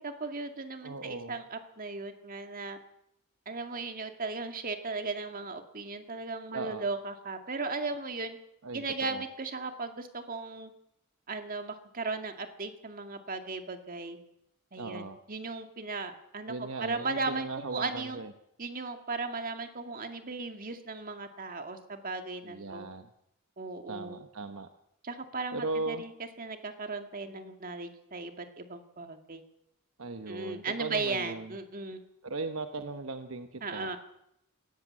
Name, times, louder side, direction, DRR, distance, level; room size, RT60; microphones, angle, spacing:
voice 1, 0.0-2.8 3.5-8.4 8.7-10.7 11.3-14.2 14.7-18.2 18.6-22.9 23.6-24.2 25.0-26.1 26.4-29.4 30.3-32.0 33.6-34.0, right 3 dB, 40° right, 6 dB, 2.1 m, -37 dB
voice 2, 0.8-1.4 6.5-6.8 8.6-9.2 14.8-15.2 16.5-18.3 22.4-23.1 23.9-24.7 25.5-26.0 30.0-31.5 32.2-34.0, right 3 dB, 65° right, 7 dB, 1.1 m, -38 dB
21.0 x 17.5 x 7.6 m, 0.80 s
head